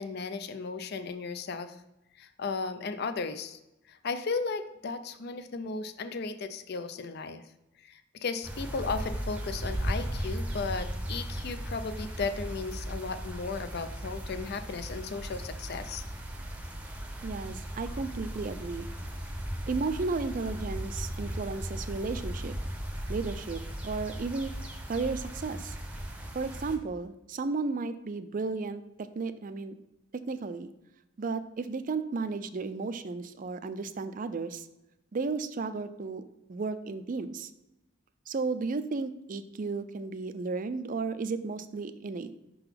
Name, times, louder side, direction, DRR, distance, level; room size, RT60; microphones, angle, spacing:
voice 1, 0.0-1.8 2.2-3.6 3.9-7.4 7.8-16.0, left 4 dB, 55° left, 10 dB, 0.5 m, -35 dB
sound 1, 8.4-26.8, equal, 5° right, 0.7 m, -37 dB
voice 2, 17.2-18.9 19.7-22.5 23.1-24.5 24.9-25.8 26.3-28.8 29.2-29.8 30.1-30.7 31.2-34.7 35.1-36.2 36.5-37.5 38.3-42.3, right 4 dB, 45° right, 11 dB, 0.4 m, -34 dB
5.8 x 3.9 x 5.7 m, 0.92 s
head